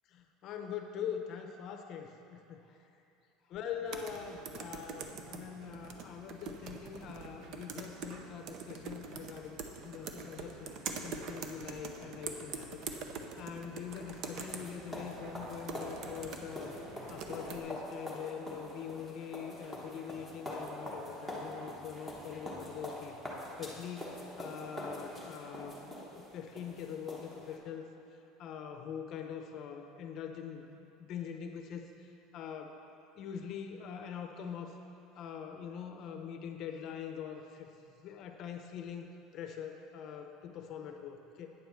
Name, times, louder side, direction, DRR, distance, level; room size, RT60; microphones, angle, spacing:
voice 1, 0.1-2.8 3.5-12.8 13.1-16.7 17.1-23.2 23.6-27.8 28.4-32.8 33.2-34.7 35.1-37.7 38.0-39.1 39.3-41.5, left 8 dB, 40° left, 5 dB, 0.7 m, -43 dB
sound 1, 3.9-17.6, right 5 dB, 45° right, 0.6 m, -44 dB
sound 2, 13.9-27.6, left 1 dB, 10° right, 1.1 m, -44 dB
9.0 x 4.6 x 6.7 m, 2.9 s
cardioid pair, 155°, 0 cm